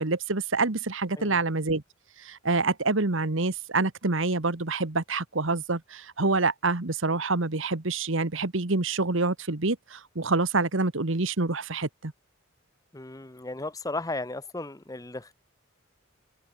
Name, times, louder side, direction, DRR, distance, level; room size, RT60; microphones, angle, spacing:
voice 1, 0.0-1.8 2.2-12.1, right 3 dB, 65° right, 1.5 m, -27 dB
voice 2, 12.9-15.3, left 2 dB, 15° left, 0.8 m, -35 dB
open air
head